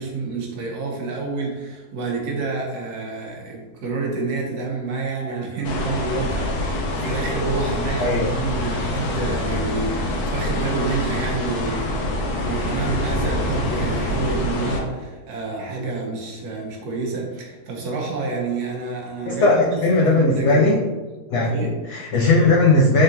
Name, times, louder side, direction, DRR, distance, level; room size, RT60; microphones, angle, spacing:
voice 1, 0.0-12.2 12.4-20.7 21.4-21.7, right 3 dB, 90° right, -1 dB, 1.4 m, -28 dB
sound 1, 5.6-14.8, left 1 dB, 85° left, 1.2 m, -25 dB
voice 2, 19.3-20.8 21.3-21.5 21.9-23.0, left 2 dB, 70° left, -2 dB, 0.7 m, -17 dB
3.7 x 3.7 x 2.7 m, 1.3 s
omnidirectional pair, 1.6 m